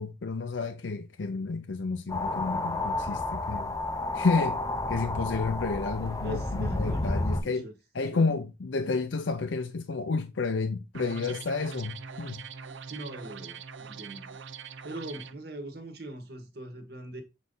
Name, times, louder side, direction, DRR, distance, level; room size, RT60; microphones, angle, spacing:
voice 1, 0.0-3.7 4.1-4.6 4.9-12.4, left 4 dB, 75° left, 0.6 m, -30 dB
sound 1, 2.1-7.4, left 2 dB, 15° left, 0.5 m, -31 dB
voice 2, 6.2-7.7 8.1-8.3 12.9-14.3 14.8-17.2, right 1 dB, 55° right, 1.6 m, -41 dB
sound 2, 10.9-15.3, right 6 dB, 75° right, 0.6 m, -43 dB
7.5 x 4.0 x 3.9 m
head